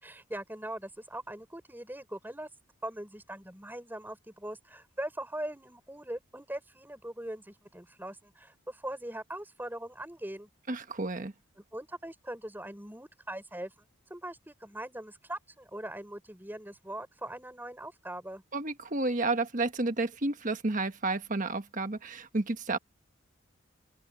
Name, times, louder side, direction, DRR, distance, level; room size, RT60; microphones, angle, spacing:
voice 1, 0.0-2.5 2.8-10.5 11.7-13.7 14.1-18.4, right 1 dB, 10° right, 5.5 m, -41 dB
voice 2, 10.7-11.3 18.5-22.8, right 2 dB, 40° right, 1.3 m, -31 dB
open air
head